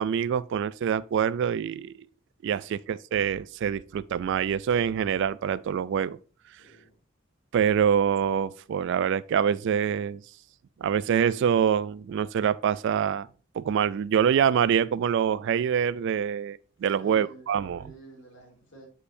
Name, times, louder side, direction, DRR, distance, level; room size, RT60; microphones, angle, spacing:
voice 1, 0.0-1.9 2.4-6.2 7.5-10.2 10.8-13.3 13.5-17.8, right 8 dB, 65° right, 0.3 m, -25 dB
voice 2, 6.6-6.9 16.9-18.9, right 2 dB, 70° left, 2.7 m, -49 dB
8.2 x 5.4 x 2.6 m
head